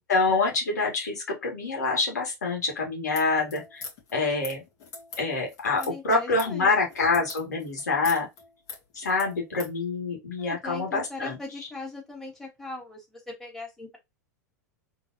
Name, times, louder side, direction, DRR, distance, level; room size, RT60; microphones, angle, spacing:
voice 1, 0.1-3.8 4.1-4.6 5.2-8.3 9.0-11.4, left 3 dB, 75° left, 2.1 m, -26 dB
sound 1, 3.0-9.8, left 4 dB, 45° left, 2.3 m, -43 dB
voice 2, 5.7-6.7 10.4-14.0, left 2 dB, 5° left, 2.7 m, -39 dB
4.0 x 3.6 x 2.7 m
figure-of-eight pair, 95°, 9 cm